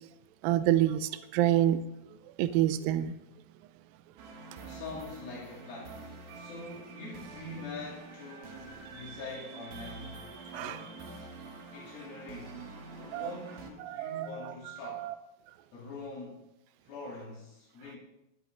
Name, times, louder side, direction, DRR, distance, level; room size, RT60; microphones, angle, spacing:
voice 1, 0.4-1.8 2.4-3.1 10.5-10.8 13.1-13.3 13.8-14.3 14.9-15.1, right 12 dB, 80° right, 2.4 m, -27 dB
sound 1, 4.2-13.7, right 4 dB, 60° right, 2.5 m, -47 dB
voice 2, 4.6-6.0 6.3-11.0 11.7-12.6 12.9-15.1 15.7-16.4 16.8-18.0, left 3 dB, 80° left, 4.6 m, -44 dB
13.5 x 11.5 x 3.9 m
omnidirectional pair, 4.2 m